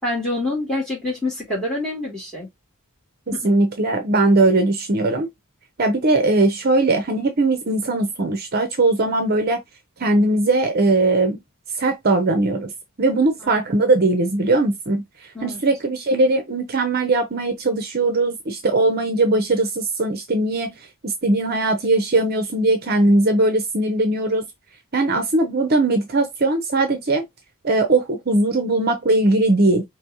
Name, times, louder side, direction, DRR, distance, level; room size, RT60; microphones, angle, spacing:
voice 1, 0.0-2.5 3.3-3.5 13.4-13.6 15.3-15.6, left 2 dB, 5° left, 2.8 m, -26 dB
voice 2, 3.3-5.3 5.8-9.6 10.0-11.4 11.8-12.7 13.0-15.0 15.4-20.8 21.0-24.5 24.9-27.2 27.6-29.8, right 2 dB, 45° right, 0.7 m, -19 dB
5.1 x 3.0 x 2.9 m
head